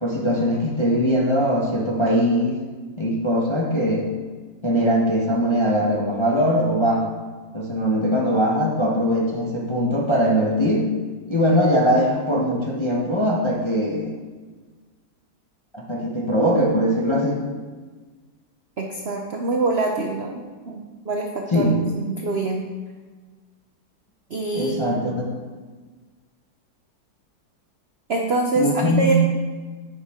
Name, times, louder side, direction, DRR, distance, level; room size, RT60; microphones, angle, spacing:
voice 1, 0.0-2.6 3.0-4.1 4.6-7.2 7.5-10.9 11.3-14.1 15.7-17.4 21.5-21.8 24.5-25.3 28.5-29.1, equal, 25° left, -3 dB, 0.6 m, -21 dB
voice 2, 18.8-20.4 20.7-21.7 22.0-22.7 24.3-25.2 28.1-29.1, right 2 dB, 80° right, 1 dB, 0.5 m, -25 dB
9.5 x 6.5 x 3.6 m, 1.4 s
omnidirectional pair, 2.1 m